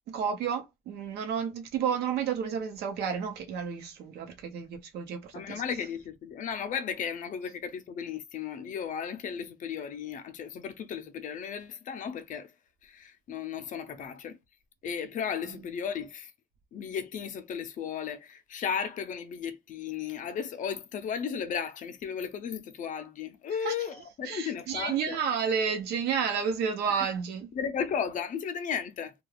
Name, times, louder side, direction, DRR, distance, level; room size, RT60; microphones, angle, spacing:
voice 1, 0.1-5.6 23.6-23.7 24.3-27.5, right 7 dB, 80° right, 0.8 m, -31 dB
voice 2, 5.3-12.5 12.8-14.4 14.8-16.3 16.7-25.2 26.9-27.1 27.5-29.1, left 7 dB, 50° left, 0.5 m, -35 dB
2.3 x 2.3 x 3.2 m
cardioid pair, 110°, 17 cm